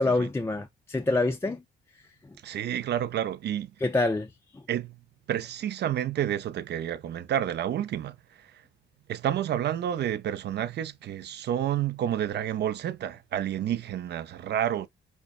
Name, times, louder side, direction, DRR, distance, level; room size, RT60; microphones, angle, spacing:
voice 1, 0.0-1.6 2.2-2.4 3.8-4.6, left 2 dB, 10° left, 0.4 m, -27 dB
voice 2, 2.4-3.7 4.7-5.0 5.3-8.6 9.1-14.9, right 10 dB, 60° right, 0.5 m, -30 dB
5.2 x 2.1 x 2.4 m
cardioid pair, 90°, 20 cm